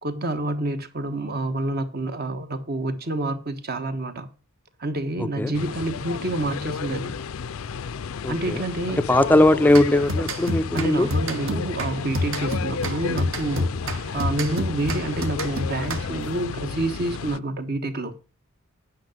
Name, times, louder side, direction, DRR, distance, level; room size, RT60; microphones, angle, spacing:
voice 1, 0.0-4.3 4.8-7.1 8.3-9.0 9.4-9.5 10.7-18.1, right 2 dB, 50° right, 1.3 m, -28 dB
voice 2, 5.2-5.5 8.2-8.6 9.0-11.1, left 1 dB, 10° left, 0.4 m, -19 dB
sound 1, 5.5-17.4, left 6 dB, 85° left, 0.5 m, -32 dB
sound 2, 9.7-16.4, left 1 dB, 70° right, 1.3 m, -29 dB
9.4 x 5.8 x 6.5 m
head